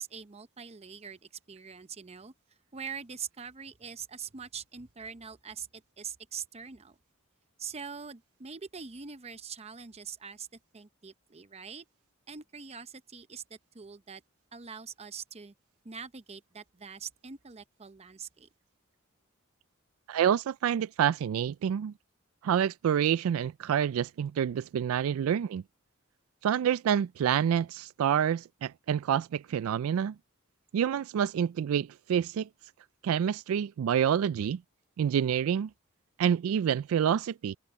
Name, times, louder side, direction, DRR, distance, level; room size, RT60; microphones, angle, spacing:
voice 1, 0.0-2.3 2.7-7.0 7.6-10.5 10.7-11.9 12.3-14.2 14.5-15.5 15.8-18.5, right 6 dB, 30° right, 0.7 m, -43 dB
voice 2, 20.1-21.9 22.4-25.6 26.4-30.1 30.7-32.5 33.0-34.6 35.0-35.7 36.2-37.6, right 8 dB, 75° right, 0.3 m, -27 dB
head